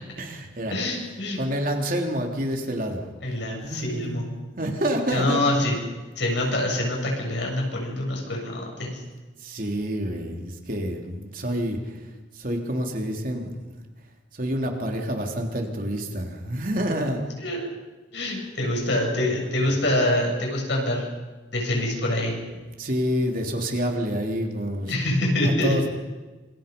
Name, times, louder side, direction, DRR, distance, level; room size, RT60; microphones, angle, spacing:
voice 1, 0.2-0.7 1.4-3.0 3.6-4.2 4.6-5.4 9.4-12.1 12.3-13.8 14.3-17.2 22.8-24.9 25.4-25.9, equal, 45° right, 2 dB, 3.5 m, -28 dB
voice 2, 0.7-1.4 3.2-4.3 5.1-5.8 6.2-9.0 17.4-17.7 18.1-21.1 21.5-22.3 24.9-25.8, left 1 dB, 65° left, 0 dB, 7.7 m, -25 dB
27.5 x 27.0 x 5.5 m, 1.2 s
head